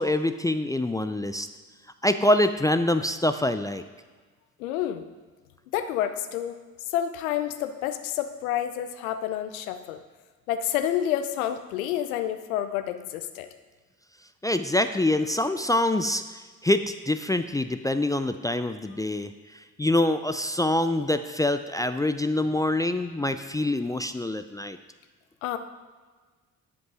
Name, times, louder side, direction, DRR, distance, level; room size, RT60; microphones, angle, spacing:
voice 1, 0.0-1.5 2.0-3.8 14.4-16.2 16.6-19.3 19.8-24.8, left 1 dB, 10° left, 9 dB, 0.4 m, -25 dB
voice 2, 4.6-5.0 5.7-6.6 6.9-10.0 10.5-13.5 25.4-25.6, left 11 dB, 75° left, 9 dB, 0.8 m, -29 dB
11.0 x 5.3 x 6.3 m, 1.4 s
figure-of-eight pair, 45°, 42 cm